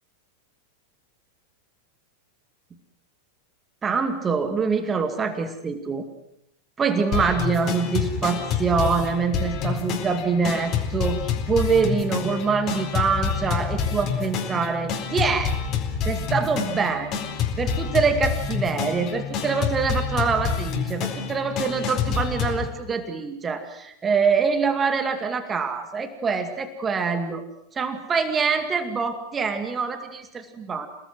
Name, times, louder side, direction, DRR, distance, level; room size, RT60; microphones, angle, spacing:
voice 1, 3.8-6.0 6.8-11.2 11.5-15.5 16.1-17.2 17.6-27.4 27.7-30.9, right 5 dB, 20° right, 8 dB, 2.3 m, -25 dB
sound 1, 7.1-22.7, left 6 dB, 35° left, 4.3 m, -27 dB
28.5 x 19.0 x 7.8 m, 0.80 s
figure-of-eight pair, 90°, 0 cm